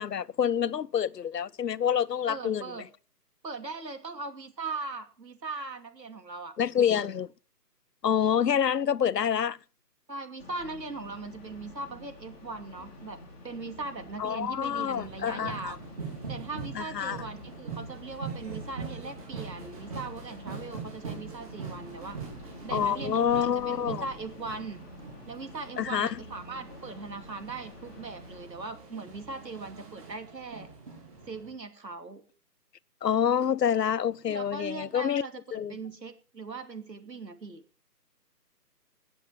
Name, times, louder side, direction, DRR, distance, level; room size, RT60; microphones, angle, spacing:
voice 1, 0.0-2.6 6.6-7.3 8.0-9.6 14.2-15.8 16.8-17.2 22.7-24.0 25.8-26.2 33.0-35.2 35.5-35.7, left 8 dB, 75° left, 0.7 m, -27 dB
voice 2, 2.3-2.9 3.4-6.6 6.9-7.1 10.1-13.2 13.4-15.8 16.3-22.2 22.6-24.8 25.3-30.7 31.3-32.2 34.3-37.6, right 3 dB, 85° right, 2.8 m, -39 dB
sound 1, 10.4-28.5, left 2 dB, 5° left, 1.5 m, -49 dB
sound 2, 15.0-31.5, right 5 dB, 20° right, 3.9 m, -42 dB
19.5 x 7.4 x 4.8 m
figure-of-eight pair, 165°, 49 cm